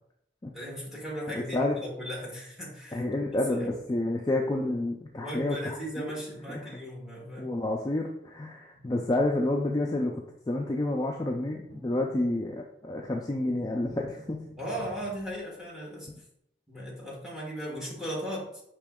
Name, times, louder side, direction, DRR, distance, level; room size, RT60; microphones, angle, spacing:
voice 1, 0.5-3.1 3.5-3.8 5.1-7.5 14.6-16.1 16.7-18.6, equal, ahead, -3 dB, 1.2 m, -37 dB
voice 2, 1.3-1.8 2.9-6.1 6.5-6.6 7.4-10.2 10.5-14.4, left 2 dB, 20° left, 0 dB, 0.3 m, -29 dB
sound 1, 11.3-12.8 13.1-15.5, equal, 75° right, 1.9 m, -50 dB
5.0 x 3.0 x 3.5 m, 0.74 s
head